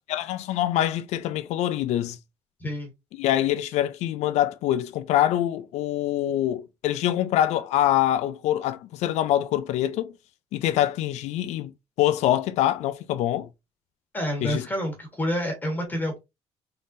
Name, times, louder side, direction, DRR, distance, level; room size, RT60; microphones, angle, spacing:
voice 1, 0.1-2.2 3.2-10.1 10.5-11.7 12.0-13.5 14.4-14.7, left 12 dB, 90° left, 0.4 m, -24 dB
voice 2, 2.6-2.9 14.1-16.2, equal, 15° left, 1.4 m, -28 dB
3.8 x 3.6 x 2.7 m
cardioid pair, 155°, 11 cm